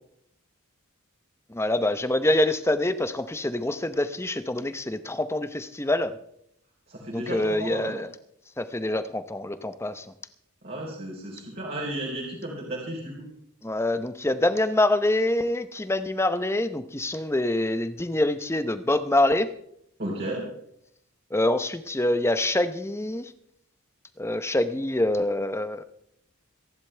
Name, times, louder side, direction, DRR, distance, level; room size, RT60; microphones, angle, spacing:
voice 1, 1.5-6.2 7.1-8.1 8.6-10.1 13.6-19.5 21.3-23.3 24.2-25.8, left 1 dB, 10° left, 11 dB, 0.7 m, -25 dB
voice 2, 6.9-8.0 10.6-13.3 20.0-20.4, right 1 dB, 45° right, -4 dB, 3.9 m, -33 dB
26.0 x 11.0 x 3.3 m, 0.74 s
head